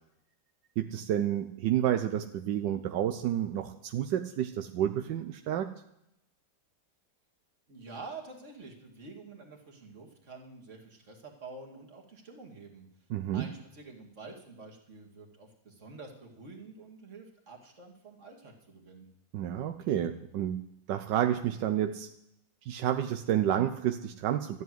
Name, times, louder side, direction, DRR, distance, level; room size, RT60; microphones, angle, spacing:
voice 1, 0.8-5.7 13.1-13.5 19.3-20.6 20.9-22.1 22.7-24.6, right 11 dB, 85° right, 6 dB, 1.4 m, -30 dB
voice 2, 7.7-12.9 13.3-19.1, right 3 dB, 40° right, 1 dB, 2.4 m, -48 dB
13.0 x 8.1 x 9.3 m, 0.81 s
omnidirectional pair, 1.9 m